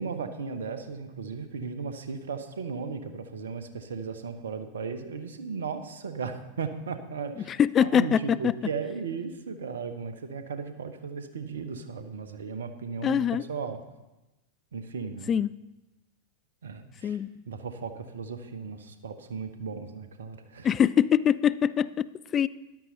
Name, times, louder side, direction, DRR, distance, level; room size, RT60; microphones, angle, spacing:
voice 1, 0.0-13.8 14.7-15.3 16.6-17.2 17.5-20.7, right 5 dB, 65° right, 9 dB, 1.1 m, -36 dB
voice 2, 7.5-8.5 13.0-13.4 15.3-15.5 17.0-17.3 20.6-22.1 22.3-22.5, left 9 dB, 25° left, 18 dB, 0.3 m, -23 dB
13.5 x 11.5 x 4.1 m, 1.0 s
figure-of-eight pair, 90°, 0 cm